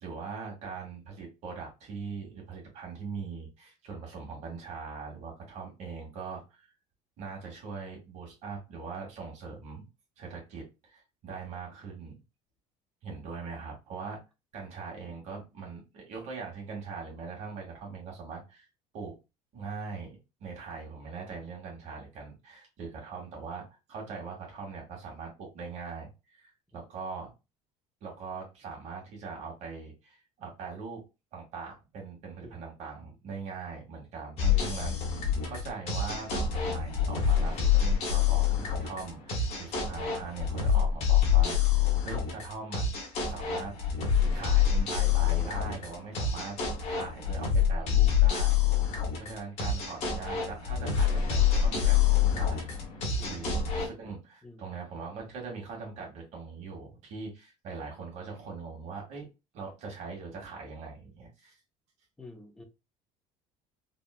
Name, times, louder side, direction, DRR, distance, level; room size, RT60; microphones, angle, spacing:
voice 1, 0.0-6.7 7.2-9.8 10.2-12.2 13.0-14.2 14.5-18.7 18.9-19.1 19.5-27.3 28.0-31.0 31.3-42.9 43.2-44.0 44.3-46.6 46.9-48.6 49.2-59.2 59.5-61.6, right 5 dB, 55° right, 1.4 m, -41 dB
sound 1, 34.4-53.9, left 8 dB, 50° left, 1.2 m, -26 dB
voice 2, 49.1-49.4 53.2-53.4 54.4-54.6 62.2-62.6, left 2 dB, 5° left, 0.5 m, -49 dB
3.5 x 2.3 x 2.3 m
cardioid pair, 150°, 14 cm